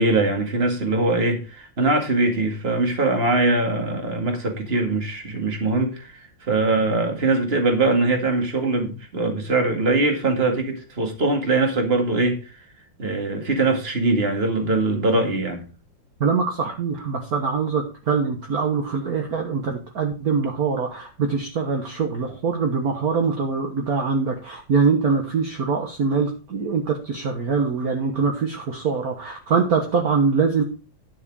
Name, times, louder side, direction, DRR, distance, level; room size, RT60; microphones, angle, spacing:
voice 1, 0.0-12.5 13.0-15.6, right 2 dB, 30° right, 2.1 m, -22 dB
voice 2, 16.2-30.6, right 5 dB, 50° right, 1.7 m, -23 dB
11.0 x 6.4 x 4.7 m
omnidirectional pair, 2.2 m